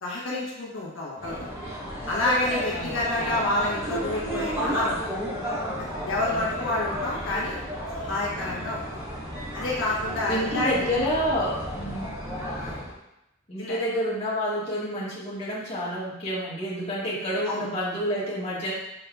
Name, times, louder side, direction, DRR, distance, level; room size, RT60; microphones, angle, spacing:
voice 1, 0.0-1.3 2.1-5.0 5.8-7.6 7.9-8.9 9.5-10.9 12.5-12.8 13.6-13.8 17.5-17.6, left 2 dB, 75° left, -6 dB, 1.2 m, -28 dB
sound 1, 1.2-12.9, equal, 10° right, 1.5 m, -33 dB
voice 2, 2.7-3.4 6.2-6.4 10.3-12.1 13.5-18.7, equal, 30° left, -8 dB, 1.5 m, -29 dB
5.5 x 4.0 x 2.3 m, 0.86 s
head